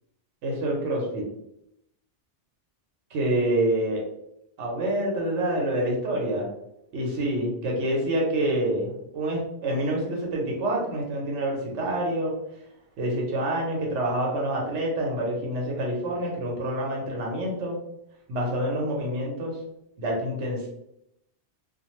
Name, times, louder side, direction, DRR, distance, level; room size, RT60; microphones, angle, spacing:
voice 1, 0.4-1.3 3.1-4.0 4.6-6.5 6.9-12.3 13.0-17.8 18.3-19.6 20.0-20.7, right 1 dB, 90° right, -1 dB, 1.1 m, -27 dB
2.5 x 2.3 x 2.9 m, 0.80 s
omnidirectional pair, 1.2 m